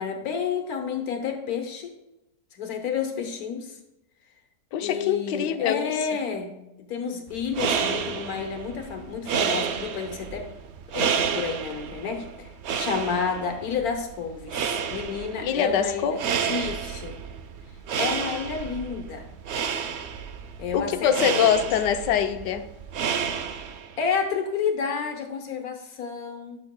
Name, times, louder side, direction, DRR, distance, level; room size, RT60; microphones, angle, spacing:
voice 1, 0.0-1.9 2.5-3.8 4.8-10.5 10.9-12.5 12.7-16.2 16.5-17.2 18.0-19.2 20.6-21.4 23.4-23.5 24.0-26.6, left 6 dB, 65° left, 5 dB, 1.4 m, -30 dB
voice 2, 4.7-5.9 15.4-16.2 20.7-22.6, left 8 dB, 85° left, 9 dB, 1.3 m, -24 dB
sound 1, 7.3-24.0, right 7 dB, 75° right, 0.6 m, -30 dB
11.0 x 6.4 x 2.2 m, 0.92 s
omnidirectional pair, 1.8 m